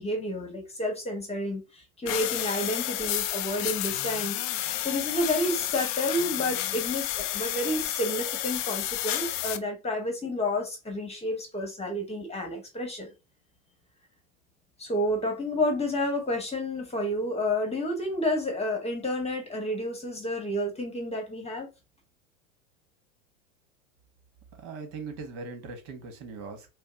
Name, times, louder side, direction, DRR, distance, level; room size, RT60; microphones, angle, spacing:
voice 1, 0.0-13.1 14.8-21.7, left 1 dB, 15° left, 1.2 m, -30 dB
sound 1, 2.1-9.6, left 14 dB, 35° left, 0.4 m, -31 dB
voice 2, 24.6-26.7, right 4 dB, 55° right, 1.5 m, -40 dB
5.1 x 2.1 x 2.5 m
hypercardioid pair, 100°, 41 cm